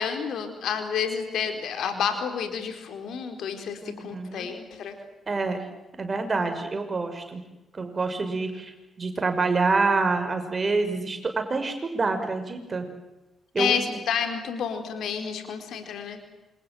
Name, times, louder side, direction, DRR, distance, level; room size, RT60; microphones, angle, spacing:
voice 1, 0.0-4.9 13.6-16.2, left 7 dB, 65° left, 7 dB, 4.2 m, -30 dB
voice 2, 3.8-4.5 5.3-5.6 6.0-7.4 7.7-12.9 13.5-13.8, right 3 dB, 35° right, 6 dB, 6.3 m, -27 dB
28.0 x 26.0 x 7.9 m, 1.0 s
hypercardioid pair, 40°, 0 cm